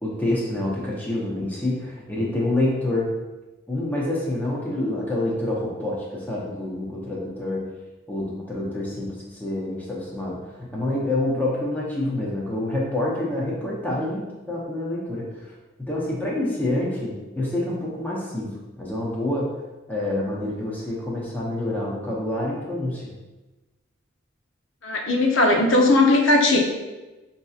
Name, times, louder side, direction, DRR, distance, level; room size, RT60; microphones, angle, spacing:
voice 1, 0.0-3.1 3.7-7.6 8.1-15.5 15.8-18.5 18.7-19.5 19.9-23.0, left 1 dB, 10° left, -5 dB, 0.7 m, -27 dB
voice 2, 24.8-26.6, left 2 dB, 75° left, 1 dB, 0.6 m, -18 dB
5.2 x 2.7 x 2.4 m, 1.1 s
head